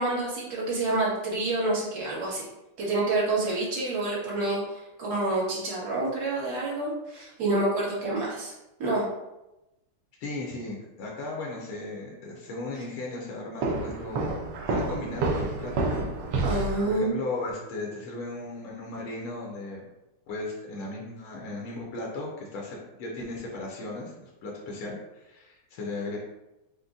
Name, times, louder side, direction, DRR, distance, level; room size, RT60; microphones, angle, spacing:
voice 1, 0.0-2.4 2.8-8.5 8.8-9.0 16.4-17.2, right 2 dB, 50° right, -6 dB, 1.6 m, -28 dB
voice 2, 10.2-14.3 14.7-16.1 16.3-16.5 16.8-19.9 20.3-26.2, left 2 dB, 80° left, -2 dB, 1.6 m, -36 dB
Walk footsteps, 13.6-16.9, right 2 dB, 70° right, 1.1 m, -29 dB
5.2 x 2.2 x 3.5 m, 0.96 s
omnidirectional pair, 2.4 m